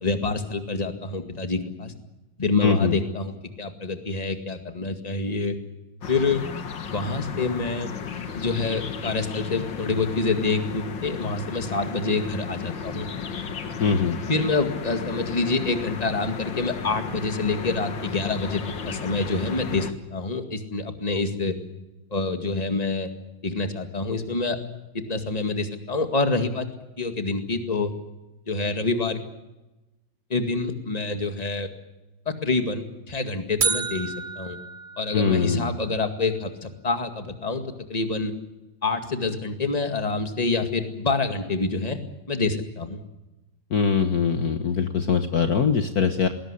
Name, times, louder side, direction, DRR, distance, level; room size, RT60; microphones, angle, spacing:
voice 1, 0.0-1.9 2.4-3.3 3.6-5.6 6.1-6.4 6.9-7.9 8.3-13.1 14.3-21.5 22.1-23.1 23.4-24.6 25.1-26.7 27.0-27.9 28.5-29.2 30.3-31.7 32.3-34.6 35.0-37.6 37.9-38.3 38.8-42.0 42.3-43.0, left 3 dB, 20° left, 7 dB, 2.1 m, -27 dB
voice 2, 2.6-3.0 13.8-14.2 35.1-35.7 43.7-46.3, left 6 dB, 55° left, 7 dB, 1.7 m, -22 dB
sound 1, 6.0-19.9, left 6 dB, 75° left, 2.3 m, -34 dB
sound 2, 33.6-35.7, right 5 dB, 50° right, 0.6 m, -29 dB
20.5 x 18.0 x 9.9 m, 1.0 s
omnidirectional pair, 2.0 m